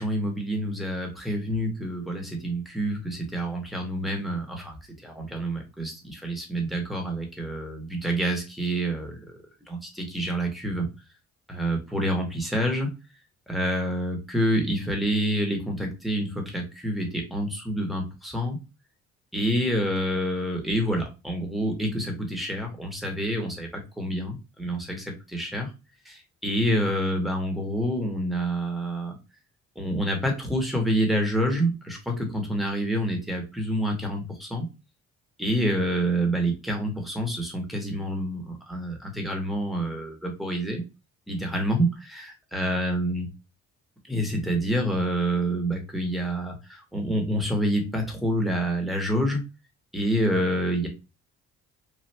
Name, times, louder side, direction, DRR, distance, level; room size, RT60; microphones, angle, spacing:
voice 1, 0.0-4.8 5.0-9.2 9.7-10.9 11.5-12.9 13.5-18.6 19.3-25.7 26.0-29.2 29.8-34.7 35.4-40.8 41.3-43.3 44.1-49.4 49.9-50.9, right 1 dB, ahead, 2 dB, 1.2 m, -27 dB
3.3 x 2.5 x 2.8 m, 0.27 s
cardioid pair, 90°, 30 cm